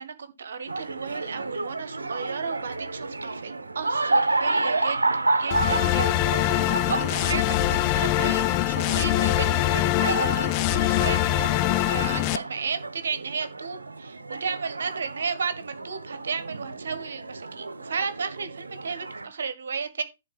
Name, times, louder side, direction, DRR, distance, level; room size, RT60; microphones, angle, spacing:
voice 1, 0.0-20.0, right 5 dB, 65° right, 1.7 m, -34 dB
sound 1, 0.7-19.3, right 2 dB, 85° right, 1.1 m, -31 dB
sound 2, 5.5-12.4, left 15 dB, 30° left, 0.6 m, -23 dB
11.0 x 4.3 x 5.8 m
figure-of-eight pair, 125°, 0 cm